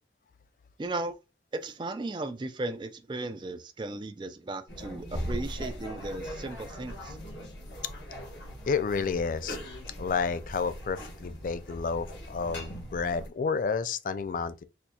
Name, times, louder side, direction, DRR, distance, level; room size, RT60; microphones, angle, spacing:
voice 1, 0.8-1.2 1.5-7.2, right 2 dB, 25° right, 0.4 m, -36 dB
sound 1, 4.7-13.3, equal, 85° left, 1.3 m, -40 dB
voice 2, 8.7-9.6 10.0-14.6, left 5 dB, 45° left, 0.3 m, -30 dB
4.2 x 2.3 x 2.7 m
head